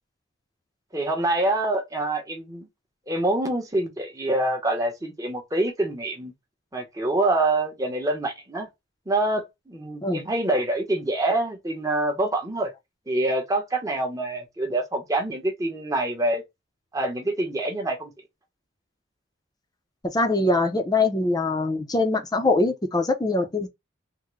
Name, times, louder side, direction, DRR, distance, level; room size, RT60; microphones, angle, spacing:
voice 1, 0.9-2.7 3.1-6.3 6.7-8.7 9.1-12.7 13.1-16.4 16.9-18.1, right 2 dB, 15° right, 0.7 m, -26 dB
voice 2, 20.0-23.7, left 2 dB, 20° left, 0.5 m, -23 dB
3.5 x 2.1 x 3.1 m
head